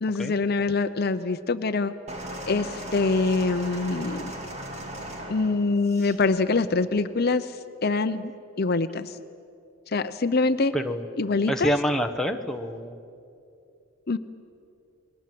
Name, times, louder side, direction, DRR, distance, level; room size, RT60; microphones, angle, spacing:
voice 1, 0.0-1.9 2.5-4.3 5.3-7.6 7.8-8.3 8.6-9.2 9.9-10.7 11.2-11.8 14.1-14.2, left 3 dB, 50° left, 11 dB, 0.7 m, -24 dB
sound 1, 2.1-6.2 7.1-7.2, right 1 dB, 30° right, 2.4 m, -37 dB
voice 2, 10.7-11.1 11.5-13.0, equal, ahead, 4 dB, 1.0 m, -26 dB
29.5 x 21.0 x 7.7 m, 2.7 s
head